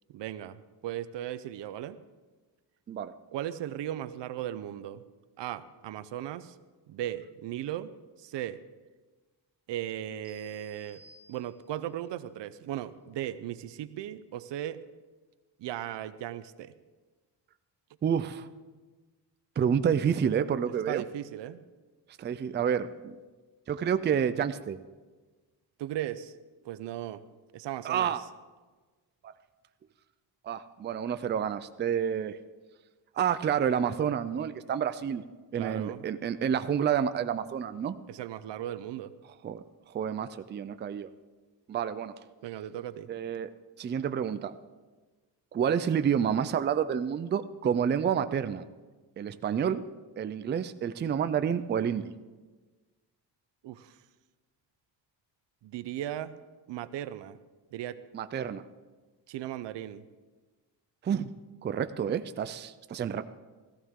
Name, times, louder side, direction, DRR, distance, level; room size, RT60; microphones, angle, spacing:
voice 1, 0.1-2.0 3.3-5.0 5.4-6.6 6.9-7.9 8.2-8.6 9.7-11.0 11.3-14.8 15.6-16.7 20.9-21.6 25.8-26.3 26.6-27.2 27.5-28.1 35.6-36.1 38.1-39.1 42.4-43.1 53.6-54.0 55.6-56.3 56.7-57.4 57.7-58.0 59.3-60.0, right 12 dB, 85° right, 14 dB, 0.7 m, -37 dB
sound 1, 10.2-12.0, right 1 dB, 5° right, 2.6 m, -57 dB
voice 2, 18.0-18.5 19.6-21.0 22.2-23.1 23.7-24.8 27.8-28.2 30.4-32.4 33.2-35.2 35.5-38.0 39.4-39.6 39.9-41.1 41.7-42.1 43.1-43.5 43.8-44.5 45.5-48.6 49.2-49.8 50.2-52.1 58.1-58.6 61.0-61.3 61.6-63.2, right 8 dB, 25° right, 11 dB, 0.4 m, -29 dB
17.5 x 14.5 x 3.7 m, 1.3 s
cardioid pair, 155°, 42 cm